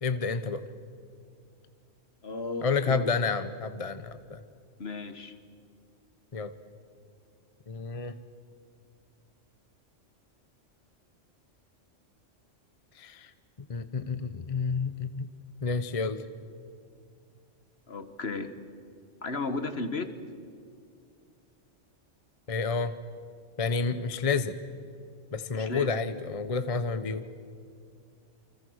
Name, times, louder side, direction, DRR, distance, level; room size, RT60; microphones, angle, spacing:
voice 1, 0.0-0.6 2.6-4.4 6.3-6.5 7.7-8.2 12.9-13.3 13.7-15.3 15.6-16.2 22.5-22.9 23.6-24.6 25.3-27.2, left 4 dB, 30° left, 11 dB, 0.8 m, -30 dB
voice 2, 2.2-3.1 4.8-5.3 17.9-18.5 19.2-20.1 25.5-25.9, left 3 dB, 55° left, 9 dB, 1.8 m, -34 dB
29.0 x 25.0 x 6.4 m, 2.3 s
omnidirectional pair, 1.3 m